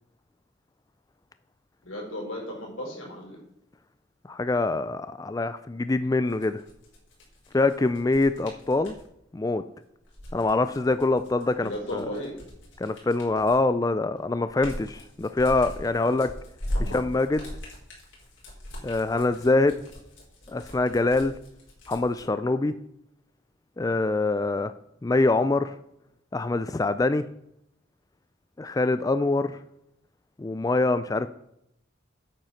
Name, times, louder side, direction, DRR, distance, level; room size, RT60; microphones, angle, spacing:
voice 1, 1.8-3.4 11.6-12.4 16.0-16.1 16.7-17.0, equal, 90° left, -1 dB, 4.5 m, -35 dB
voice 2, 4.3-6.6 7.5-9.0 9.3-9.6 10.3-12.0 12.8-16.3 16.9-17.4 18.8-19.8 20.5-21.3 21.9-22.7 23.8-24.7 25.0-25.8 26.3-27.2 28.6-29.5 30.4-31.3, left 2 dB, 20° left, 12 dB, 0.3 m, -24 dB
sound 1, 6.2-9.0 10.0-13.7 14.2-22.2, equal, 70° left, 4.1 m, -39 dB
8.9 x 8.0 x 5.7 m, 0.78 s
head